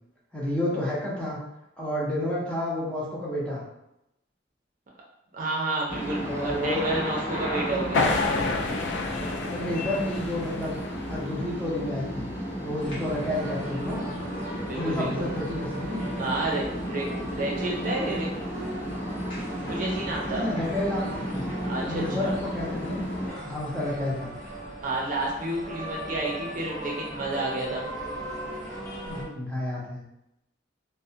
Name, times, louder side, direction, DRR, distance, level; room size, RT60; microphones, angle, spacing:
voice 1, 0.3-1.4 1.8-3.6 6.2-6.9 7.7-7.9 9.5-10.8 11.1-12.3 12.6-14.1 14.7-16.1 20.3-21.5 21.9-23.0 23.5-24.3 29.0-30.0, left 1 dB, 5° left, -7 dB, 0.5 m, -30 dB
voice 2, 5.3-8.0 14.6-15.3 16.2-17.1 17.3-18.3 19.7-20.5 21.6-22.3 24.8-27.9, right 2 dB, 45° right, -2 dB, 0.5 m, -30 dB
sound 1, 5.9-23.3, equal, 85° left, 1.0 m, -33 dB
sound 2, 7.9-11.4, left 3 dB, 65° left, 0.3 m, -29 dB
sound 3, 12.8-29.3, right 1 dB, 50° left, 0.8 m, -39 dB
2.3 x 2.0 x 2.7 m, 0.86 s
head